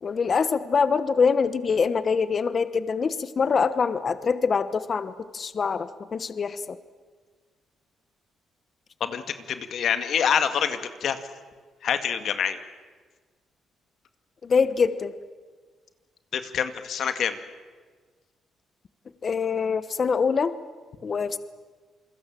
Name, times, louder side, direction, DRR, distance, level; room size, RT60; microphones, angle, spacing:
voice 1, 0.0-6.8 14.4-15.1 19.2-20.6 21.0-21.4, left 5 dB, 40° left, 13 dB, 1.1 m, -24 dB
voice 2, 9.0-11.2 11.8-12.6 16.3-17.4, left 8 dB, 65° left, 9 dB, 2.0 m, -26 dB
28.0 x 23.0 x 7.6 m, 1.5 s
cardioid pair, 105°, 0 cm